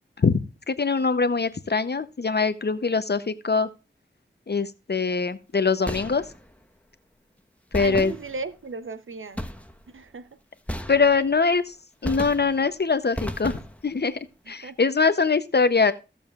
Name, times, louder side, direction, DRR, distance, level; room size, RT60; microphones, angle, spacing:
voice 1, 0.2-3.7 4.5-6.2 7.7-8.1 10.9-11.8 12.0-14.2 14.5-15.9, left 4 dB, 55° left, 0.7 m, -23 dB
sound 1, 5.9-6.6 7.7-8.7 9.4-10.0 10.7-11.5 12.0-12.8 13.2-14.0, equal, 5° left, 1.1 m, -34 dB
voice 2, 7.8-9.4 9.9-10.3 14.6-14.7, right 3 dB, 90° right, 0.8 m, -35 dB
16.0 x 6.9 x 2.4 m
wide cardioid pair, 60°, 20 cm